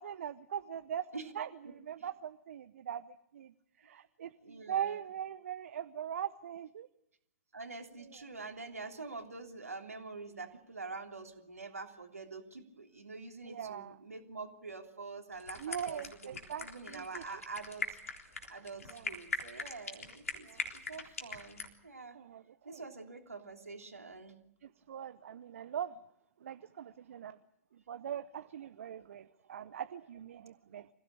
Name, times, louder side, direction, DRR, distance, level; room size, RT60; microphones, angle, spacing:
voice 1, 0.0-1.0 1.4-6.9 13.5-14.0 15.6-17.2 18.9-19.0 20.5-20.6 22.1-22.8 24.6-25.9 26.4-27.4 27.9-30.9, right 9 dB, 65° right, 12 dB, 0.8 m, -41 dB
voice 2, 4.4-5.0 7.5-22.2 22.6-24.4, right 3 dB, 85° right, 3 dB, 3.3 m, -46 dB
sound 1, 15.3-21.7, left 4 dB, 80° left, 3.7 m, -41 dB
26.0 x 16.0 x 8.6 m, 0.80 s
figure-of-eight pair, 105°, 8 cm